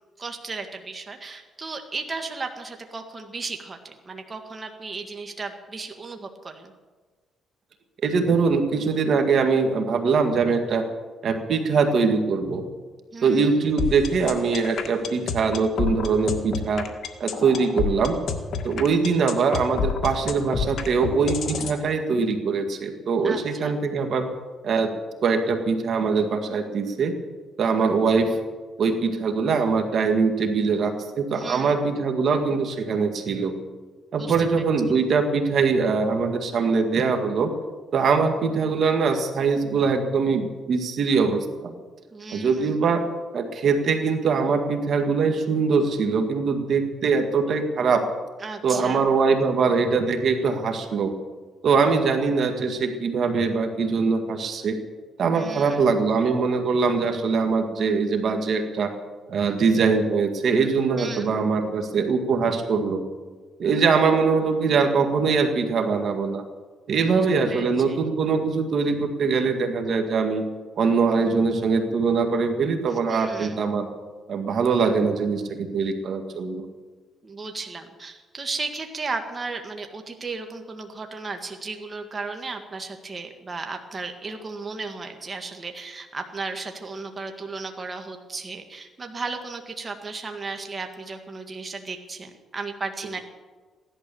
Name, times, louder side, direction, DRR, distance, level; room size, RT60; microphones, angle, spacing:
voice 1, 0.2-6.7 13.1-13.6 23.2-23.8 31.3-31.8 34.1-34.7 42.1-42.8 48.4-49.0 55.3-55.9 60.9-61.3 66.9-67.2 67.5-68.0 72.9-73.6 77.2-93.2, right 4 dB, 30° right, 5 dB, 1.7 m, -35 dB
voice 2, 8.0-10.8 11.2-12.6 13.2-16.9 17.2-18.2 18.6-24.3 24.6-24.9 25.2-27.1 27.6-28.4 28.8-33.5 34.1-37.5 37.9-41.8 42.3-43.0 43.3-48.1 48.6-51.1 51.6-54.8 55.2-58.9 59.3-63.0 63.6-66.4 66.9-70.4 70.8-73.9 74.3-76.7, right 5 dB, 60° right, 6 dB, 1.8 m, -22 dB
sound 1, 13.8-21.8, left 6 dB, 60° left, 1.8 m, -28 dB
16.5 x 11.5 x 6.9 m, 1.4 s
cardioid pair, 90°, 0 cm